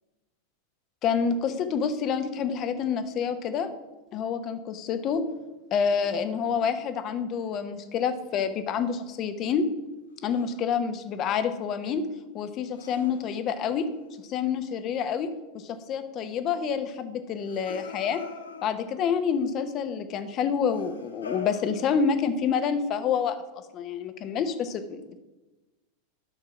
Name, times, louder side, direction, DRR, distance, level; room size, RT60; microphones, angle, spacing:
voice 1, 1.0-3.7 4.1-5.3 5.7-9.7 10.2-12.0 12.3-13.9 14.2-18.2 18.6-23.4 23.7-25.2, left 6 dB, 40° left, 10 dB, 0.9 m, -28 dB
sound 1, 5.7-7.2 10.2-10.7 12.7-14.5 17.3-19.2 20.7-22.4, left 4 dB, 80° left, 0.9 m, -44 dB
10.0 x 5.9 x 5.8 m, 1.1 s
figure-of-eight pair, 90°, 0 cm